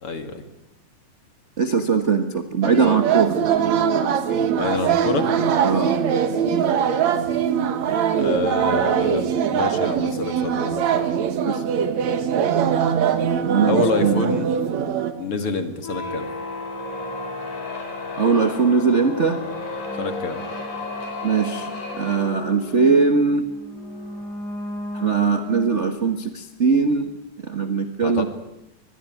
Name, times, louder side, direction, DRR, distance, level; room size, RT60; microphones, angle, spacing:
voice 1, 0.0-0.4 4.5-5.3 8.1-9.2 9.5-11.1 13.7-14.5 15.2-16.3 20.0-20.4 28.0-28.3, left 4 dB, 50° left, 8 dB, 2.8 m, -27 dB
voice 2, 1.6-3.4 5.6-6.0 11.4-11.6 13.4-14.4 18.2-19.4 21.2-21.7 22.0-23.4 24.9-27.1 27.4-28.3, right 5 dB, 50° right, 8 dB, 0.8 m, -20 dB
sound 1, 2.6-15.1, right 8 dB, 65° right, 2.7 m, -22 dB
sound 2, 15.8-26.1, left 2 dB, 70° left, 6.0 m, -33 dB
24.5 x 21.0 x 9.2 m, 0.90 s
omnidirectional pair, 3.6 m